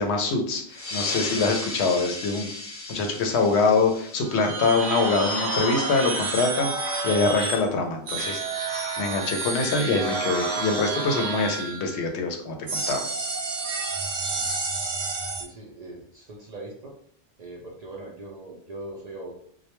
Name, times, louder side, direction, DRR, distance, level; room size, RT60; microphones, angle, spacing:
voice 1, 0.0-2.5 2.9-8.4 9.0-13.0, left 3 dB, 90° left, 3 dB, 0.9 m, -24 dB
sound 1, 0.7-5.8, left 3 dB, 50° left, 0.9 m, -36 dB
sound 2, 4.2-7.7 8.1-12.1 12.7-15.4, right 3 dB, 80° right, 0.8 m, -29 dB
voice 2, 15.4-16.9 17.4-19.3, right 2 dB, 55° right, -1 dB, 0.5 m, -41 dB
2.2 x 2.1 x 2.9 m, 0.62 s
omnidirectional pair, 1.1 m